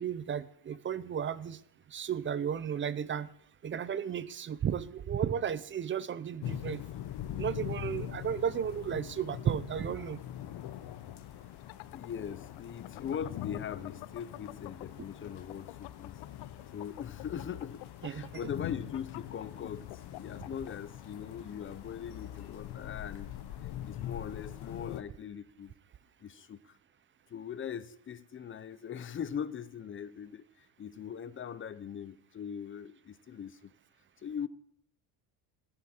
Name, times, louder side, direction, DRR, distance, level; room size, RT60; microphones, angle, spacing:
voice 1, 0.0-1.6 1.9-3.3 3.6-6.8 7.4-10.2 18.0-18.3, right 8 dB, 25° right, 0.5 m, -34 dB
sound 1, 6.4-25.0, left 12 dB, 60° left, 1.1 m, -43 dB
sound 2, 11.4-15.0 15.4-20.7, left 23 dB, 80° left, 0.5 m, -47 dB
voice 2, 11.9-16.2 16.7-23.3 23.8-25.7 26.2-26.8 27.3-33.7 34.2-34.5, left 8 dB, 25° left, 0.6 m, -41 dB
15.0 x 10.5 x 4.4 m
cardioid pair, 120°, 45 cm